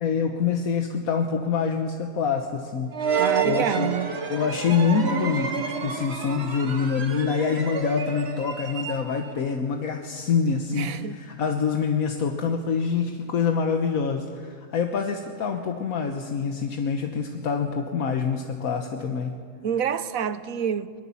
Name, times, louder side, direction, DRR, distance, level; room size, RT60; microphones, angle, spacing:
voice 1, 0.0-2.9 3.4-4.0 4.3-19.3, left 6 dB, 80° left, 1.6 m, -26 dB
sound 1, 2.9-9.4, right 6 dB, 50° right, 1.6 m, -29 dB
voice 2, 3.2-4.1 10.7-11.1 19.6-20.9, right 8 dB, 75° right, 1.2 m, -27 dB
23.0 x 21.0 x 7.1 m
omnidirectional pair, 1.5 m